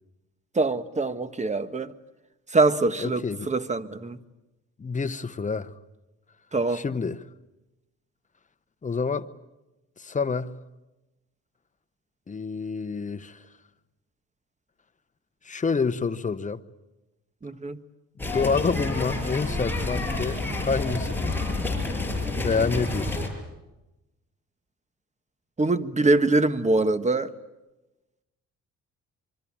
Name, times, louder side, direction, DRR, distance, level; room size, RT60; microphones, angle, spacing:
voice 1, 0.5-1.9 2.5-4.2 6.5-6.8 17.4-17.8 25.6-27.3, right 2 dB, 25° right, 1.4 m, -24 dB
voice 2, 3.0-3.5 4.8-5.7 6.7-7.2 8.8-9.3 10.0-10.5 12.3-13.4 15.4-16.6 18.2-21.4 22.4-23.3, left 5 dB, 25° left, 1.1 m, -28 dB
sound 1, 18.2-23.3, left 2 dB, 5° left, 6.5 m, -29 dB
25.5 x 24.0 x 8.9 m
cardioid pair, 90°, 30 cm